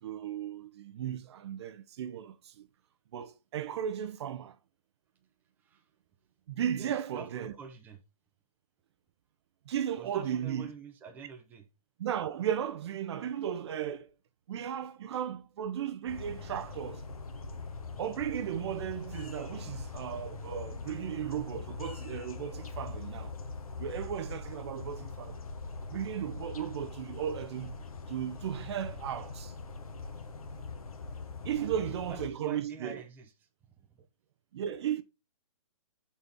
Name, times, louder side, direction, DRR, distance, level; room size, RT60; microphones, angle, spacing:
voice 1, 0.0-2.7 3.1-4.6 6.5-7.5 9.7-10.7 12.0-14.1 14.5-17.0 18.0-23.3 23.8-25.4 25.9-27.8 28.1-29.5 31.4-33.0 34.5-35.0, right 9 dB, 50° right, 0.6 m, -35 dB
voice 2, 6.7-8.0 10.0-11.7 31.4-33.3 33.8-34.0, right 5 dB, 10° right, 0.6 m, -47 dB
sound 1, 16.1-32.3, left 3 dB, 85° left, 1.1 m, -42 dB
6.7 x 4.1 x 3.5 m
hypercardioid pair, 145°, 18 cm